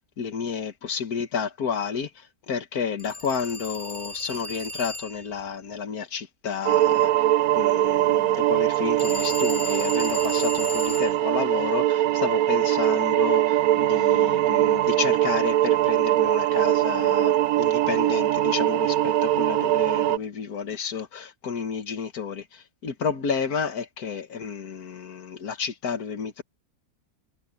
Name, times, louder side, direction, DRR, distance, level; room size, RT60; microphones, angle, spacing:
voice 1, 0.2-2.1 2.5-7.1 7.5-22.4 22.8-26.4, left 6 dB, 80° left, 2.0 m, -31 dB
Telephone, 3.0-5.3 9.0-11.2, left 3 dB, 5° left, 3.8 m, -35 dB
sound 1, 6.6-20.2, right 13 dB, 80° right, 1.1 m, -22 dB
omnidirectional pair, 1.6 m